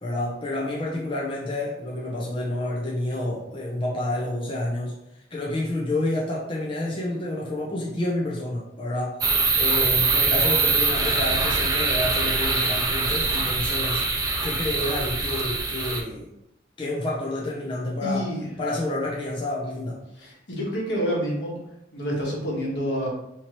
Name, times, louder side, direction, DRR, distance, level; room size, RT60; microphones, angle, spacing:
voice 1, 0.0-5.0 5.3-16.3 16.8-18.3 18.6-20.0, left 1 dB, 30° left, -4 dB, 0.6 m, -29 dB
sound 1, 9.2-16.0, right 3 dB, 20° right, 0.5 m, -23 dB
voice 2, 18.0-18.5 20.2-21.6 21.9-23.1, equal, 75° left, -3 dB, 1.3 m, -28 dB
4.4 x 2.9 x 3.0 m, 0.82 s
head